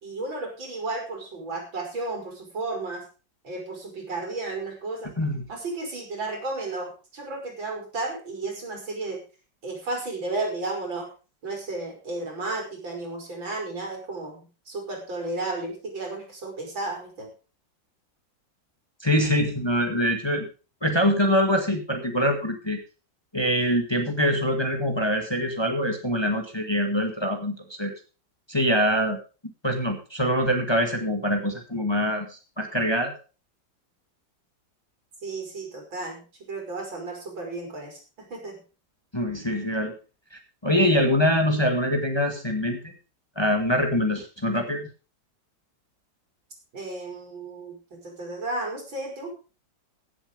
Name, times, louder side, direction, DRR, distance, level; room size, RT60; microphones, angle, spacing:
voice 1, 0.0-3.0 3.4-5.1 5.5-9.2 9.6-11.1 11.4-17.3 35.2-38.6 46.7-49.4, right 2 dB, 80° right, 1 dB, 5.7 m, -33 dB
voice 2, 19.0-20.5 20.8-22.8 23.3-27.9 28.5-29.2 29.6-33.1 39.1-39.9 40.3-42.9 43.4-44.9, equal, 15° left, 4 dB, 1.9 m, -24 dB
16.0 x 7.5 x 5.3 m, 0.35 s
omnidirectional pair, 2.1 m